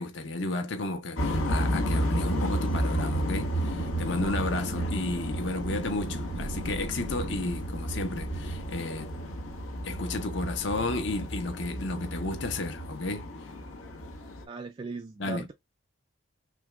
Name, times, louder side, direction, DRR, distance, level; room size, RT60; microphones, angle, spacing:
voice 1, 0.0-9.1 9.8-13.5 15.2-15.5, left 2 dB, 60° left, 0.8 m, -33 dB
sound 1, 1.2-14.4, equal, 90° left, 1.2 m, -32 dB
Thunder / Rain, 3.3-11.8, right 1 dB, 70° right, 1.0 m, -44 dB
voice 2, 14.5-15.5, right 4 dB, 25° right, 0.3 m, -38 dB
6.1 x 2.2 x 2.4 m
head